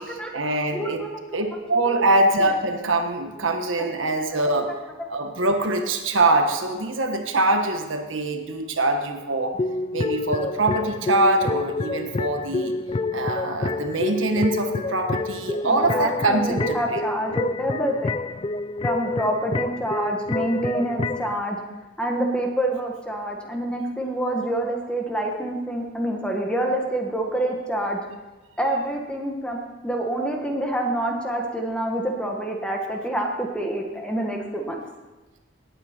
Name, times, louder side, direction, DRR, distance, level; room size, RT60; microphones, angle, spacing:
voice 1, 0.0-1.0 1.3-4.7 5.1-9.6 9.9-12.8 13.1-17.0, right 2 dB, 90° right, 5 dB, 1.4 m, -23 dB
voice 2, 0.7-1.4 2.0-2.1 4.3-4.4 15.6-18.2 18.8-21.6 22.0-28.0 28.6-29.6 29.8-34.8, right 1 dB, 5° left, 1 dB, 1.4 m, -27 dB
sound 1, 9.5-21.3, left 3 dB, 25° left, 0.3 m, -28 dB
18.0 x 9.0 x 4.5 m, 1.2 s
head